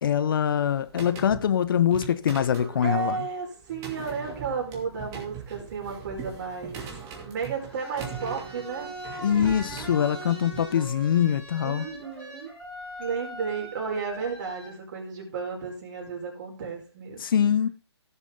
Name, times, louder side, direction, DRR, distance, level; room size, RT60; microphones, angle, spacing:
voice 1, 0.0-3.3 9.2-11.9 17.2-17.7, left 9 dB, 50° left, 0.8 m, -24 dB
sound 1, 0.7-10.6, right 7 dB, 20° right, 2.6 m, -41 dB
voice 2, 2.8-6.8 7.2-8.9 11.6-12.5 13.0-17.2, right 5 dB, 45° right, 4.7 m, -33 dB
sound 2, 7.4-14.7, right 1 dB, 5° left, 5.1 m, -41 dB
17.0 x 7.3 x 3.8 m
hypercardioid pair, 145°, 14 cm